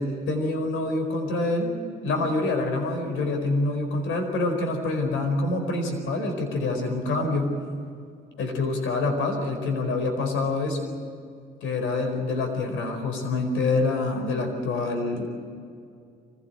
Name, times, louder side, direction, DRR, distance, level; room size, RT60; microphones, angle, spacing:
voice 1, 0.0-1.8 2.0-7.5 8.4-10.9 11.6-15.2, left 2 dB, 85° left, 5 dB, 4.7 m, -26 dB
25.0 x 17.5 x 9.2 m, 2.3 s
cardioid pair, 90°, 20 cm